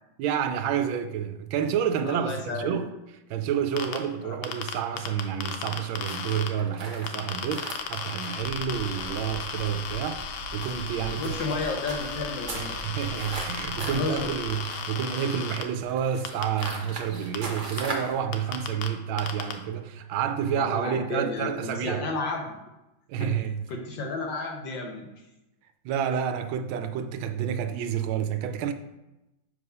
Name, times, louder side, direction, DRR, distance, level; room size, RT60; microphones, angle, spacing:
voice 1, 0.2-2.9 3.3-11.6 12.5-22.0 23.1-23.6 25.8-28.7, right 8 dB, 85° right, 1.4 m, -29 dB
voice 2, 2.0-2.8 4.2-4.4 11.2-12.8 13.8-14.3 20.5-22.6 23.2-23.3 23.7-25.1, left 3 dB, 70° left, 1.4 m, -32 dB
sound 1, 3.8-4.0 4.4-6.5 7.1-15.6 16.2-16.7 17.3-17.4 17.8-17.9 18.3-18.9 19.2-19.5, left 7 dB, 90° left, 1.5 m, -35 dB
sound 2, 6.0-18.2, right 2 dB, 45° right, 0.6 m, -40 dB
sound 3, 8.4-14.5, right 3 dB, 30° left, 1.5 m, -44 dB
7.4 x 3.2 x 5.4 m
omnidirectional pair, 2.2 m